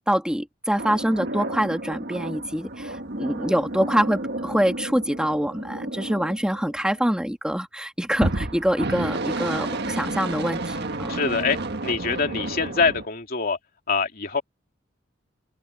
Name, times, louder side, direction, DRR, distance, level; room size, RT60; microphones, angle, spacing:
voice 1, 0.1-11.1, equal, 5° right, 1.4 m, -25 dB
sound 1, 0.8-7.1 8.1-13.1, right 2 dB, 60° right, 1.7 m, -31 dB
voice 2, 11.1-13.6 13.9-14.4, left 4 dB, 50° left, 2.9 m, -24 dB
open air
head